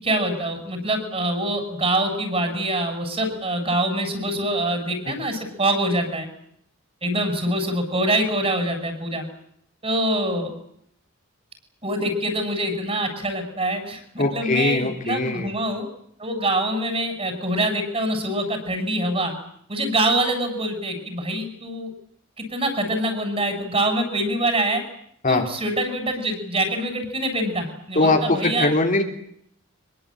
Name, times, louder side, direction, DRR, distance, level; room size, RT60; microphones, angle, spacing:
voice 1, 0.0-6.3 7.0-9.2 9.8-10.5 11.8-15.9 16.2-19.3 19.7-21.9 22.4-24.8 25.3-28.7, right 1 dB, 30° right, 6 dB, 7.7 m, -25 dB
voice 2, 14.2-15.5 25.2-25.5 28.0-29.0, left 2 dB, 40° left, 3 dB, 3.4 m, -21 dB
25.0 x 23.0 x 9.0 m, 0.70 s
head